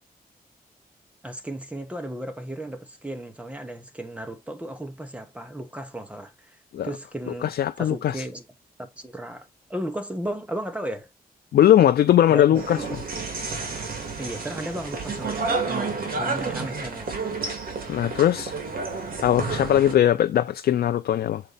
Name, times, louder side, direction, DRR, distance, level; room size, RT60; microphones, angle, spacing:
voice 1, 1.2-6.6 6.8-7.5 7.8-8.4 8.8-11.1 12.3-13.1 14.2-17.2, right 1 dB, 10° right, 1.0 m, -35 dB
voice 2, 7.4-8.2 11.5-12.8 17.9-18.5 19.2-21.4, left 11 dB, 80° left, 0.4 m, -20 dB
sound 1, 12.5-19.9, right 4 dB, 70° right, 2.2 m, -30 dB
6.6 x 4.3 x 4.0 m
wide cardioid pair, 170°, 16 cm